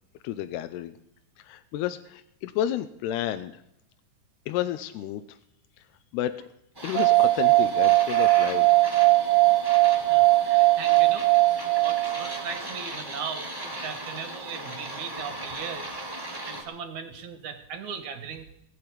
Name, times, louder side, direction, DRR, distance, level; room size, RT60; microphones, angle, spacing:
voice 1, 0.2-1.0 1.4-3.6 4.5-5.4 6.1-6.3 6.8-8.8, left 11 dB, 85° left, 10 dB, 2.8 m, -31 dB
sound 1, 6.7-16.6, right 1 dB, 10° right, 1.8 m, -38 dB
sound 2, 7.0-12.5, right 19 dB, 80° right, 2.7 m, -20 dB
voice 2, 10.1-16.0 16.5-18.5, right 6 dB, 60° right, 9 dB, 2.4 m, -38 dB
20.5 x 7.0 x 9.6 m, 0.75 s
omnidirectional pair, 4.6 m